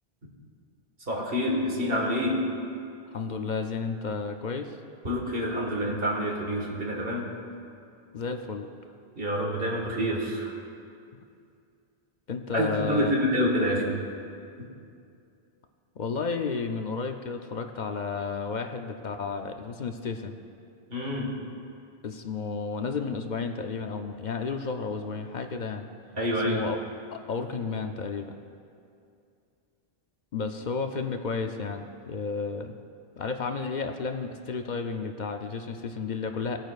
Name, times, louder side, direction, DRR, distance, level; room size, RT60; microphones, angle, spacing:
voice 1, 1.1-2.4 5.0-7.3 9.2-10.5 12.5-13.9 20.9-21.3 26.1-26.6, equal, 60° right, -2 dB, 1.9 m, -27 dB
voice 2, 3.1-4.8 8.1-8.7 12.3-13.1 16.0-20.3 22.0-25.9 26.4-26.8 27.1-28.3 30.3-32.7 33.2-36.6, left 4 dB, 55° left, 6 dB, 0.6 m, -32 dB
18.5 x 9.2 x 2.4 m, 2.5 s
omnidirectional pair, 1.1 m